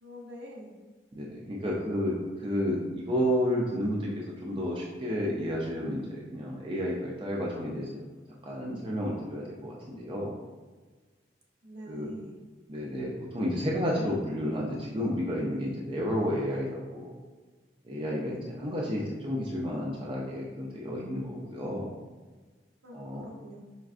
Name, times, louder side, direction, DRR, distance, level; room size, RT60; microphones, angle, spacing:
voice 1, 0.0-0.7 11.6-12.3 22.8-23.6, equal, 70° right, -2 dB, 0.7 m, -45 dB
voice 2, 1.1-8.0 8.4-10.3 11.9-12.1 12.7-17.1 17.8-21.9 22.9-23.2, equal, 30° right, -3 dB, 0.4 m, -31 dB
4.4 x 2.4 x 2.4 m, 1.3 s
head